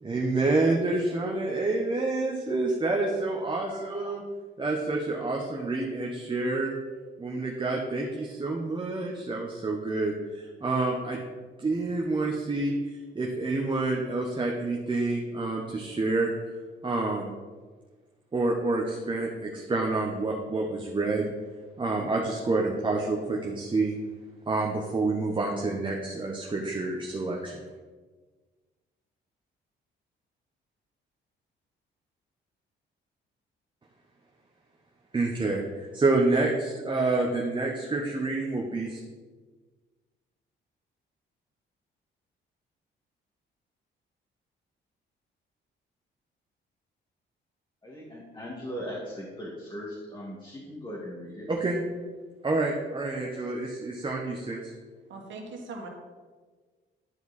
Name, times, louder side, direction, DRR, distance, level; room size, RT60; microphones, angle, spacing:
voice 1, 0.0-4.2 4.6-6.7 7.2-11.2 11.6-16.3 16.8-17.3 18.3-21.3 21.8-23.9 24.5-27.6 35.1-39.0 51.5-51.8 52.4-54.7, right 2 dB, 25° right, -1 dB, 1.0 m, -28 dB
voice 2, 47.8-51.5, equal, 25° left, -6 dB, 1.8 m, -39 dB
voice 3, 55.1-55.9, right 3 dB, 70° right, 1 dB, 1.7 m, -40 dB
11.0 x 4.6 x 4.1 m, 1.4 s
cardioid pair, 90°, 20 cm